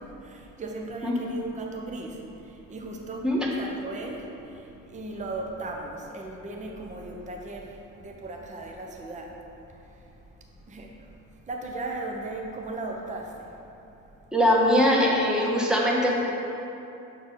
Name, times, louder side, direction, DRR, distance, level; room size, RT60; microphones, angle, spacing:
voice 1, 0.0-3.3 3.6-9.4 9.9-10.1 10.7-11.1 11.5-13.5, right 2 dB, 20° right, 1 dB, 0.7 m, -37 dB
voice 2, 14.3-16.1, equal, ahead, -4 dB, 1.2 m, -21 dB
6.5 x 4.3 x 5.3 m, 2.8 s
cardioid pair, 105°, 33 cm